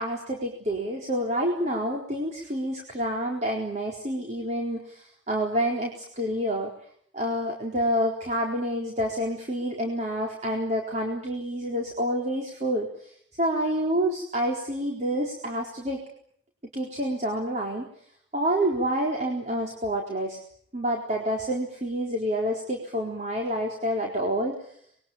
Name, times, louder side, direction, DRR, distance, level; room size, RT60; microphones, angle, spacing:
voice 1, 0.0-6.7 7.1-13.1 13.4-16.0 16.7-17.9 18.3-20.4 20.7-24.6, equal, 40° right, 0 dB, 4.2 m, -28 dB
26.5 x 22.0 x 8.9 m, 0.66 s
head